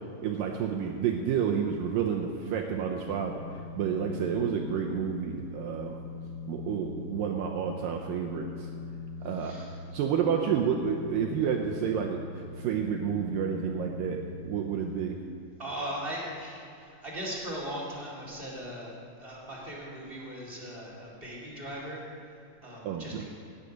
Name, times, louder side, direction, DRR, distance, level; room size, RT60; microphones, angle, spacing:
voice 1, 0.2-3.4 3.8-6.0 6.5-8.7 9.2-9.6 9.9-15.2 22.8-23.2, right 7 dB, 85° right, 1 dB, 2.0 m, -30 dB
sound 1, 2.7-14.9, left 3 dB, 75° left, 2.5 m, -42 dB
voice 2, 9.4-9.7 15.6-18.9 19.2-22.0 22.6-23.2, equal, 20° right, -5 dB, 1.5 m, -39 dB
17.0 x 9.7 x 5.1 m, 2.6 s
omnidirectional pair, 4.9 m